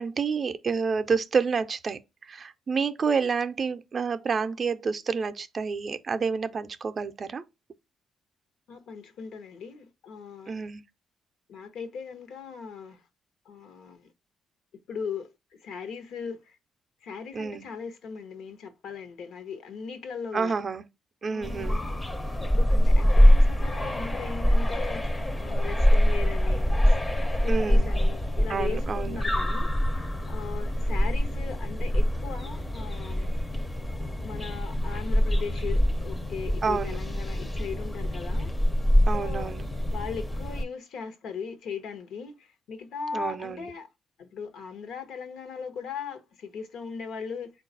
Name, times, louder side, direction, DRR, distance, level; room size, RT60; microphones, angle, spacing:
voice 1, 0.0-2.0 2.3-7.4 10.5-10.8 17.3-17.7 20.3-20.8 21.2-21.8 27.5-27.9 28.5-29.2 36.6-37.0 39.1-39.7 43.1-43.7, right 5 dB, 40° right, 0.4 m, -29 dB
voice 2, 8.7-10.6 11.5-13.0 13.5-14.1 14.9-15.3 15.6-16.6 17.0-20.5 21.3-22.0 22.5-25.0 25.4-27.0 27.4-29.7 29.9-33.3 34.2-38.5 39.1-39.5 39.9-43.9 44.2-47.5, left 5 dB, 80° left, 0.8 m, -38 dB
sound 1, 21.4-40.6, equal, 20° left, 0.5 m, -24 dB
4.0 x 2.3 x 3.8 m
cardioid pair, 90°, 0 cm